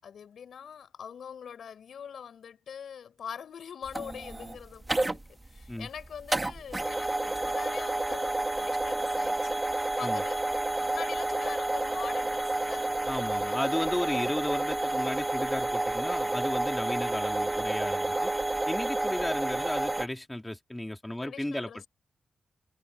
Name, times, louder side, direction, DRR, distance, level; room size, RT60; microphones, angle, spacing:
voice 1, 0.0-12.9 13.3-13.6 18.1-18.7 21.2-21.9, left 7 dB, 75° left, 5.7 m, -43 dB
sound 1, 3.9-20.1, right 2 dB, 20° right, 1.6 m, -30 dB
voice 2, 13.1-18.3 18.7-21.8, left 1 dB, 10° left, 3.1 m, -34 dB
cardioid pair, 85°, 0 cm